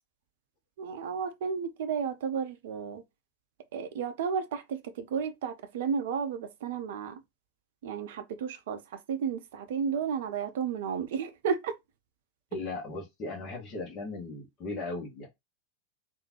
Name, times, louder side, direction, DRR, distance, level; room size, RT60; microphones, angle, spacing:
voice 1, 0.8-3.0 3.7-7.2 7.8-11.8, right 6 dB, 55° right, 0.5 m, -33 dB
voice 2, 12.5-15.3, left 2 dB, 35° left, 1.4 m, -37 dB
3.6 x 2.6 x 3.0 m
figure-of-eight pair, 90°, 0 cm